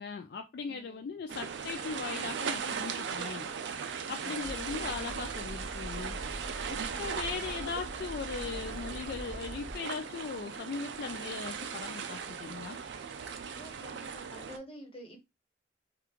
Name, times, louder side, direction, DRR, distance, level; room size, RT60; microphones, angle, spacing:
voice 1, 0.0-3.5 4.1-6.2 6.7-12.8, left 5 dB, 55° left, 0.3 m, -39 dB
voice 2, 0.7-1.1 4.0-4.5 7.0-7.5 13.6-15.2, equal, 30° left, 1.1 m, -50 dB
sound 1, 1.3-14.6, right 6 dB, 70° right, 0.4 m, -38 dB
sound 2, 4.4-9.8, equal, 20° right, 1.7 m, -44 dB
3.4 x 2.4 x 3.0 m
head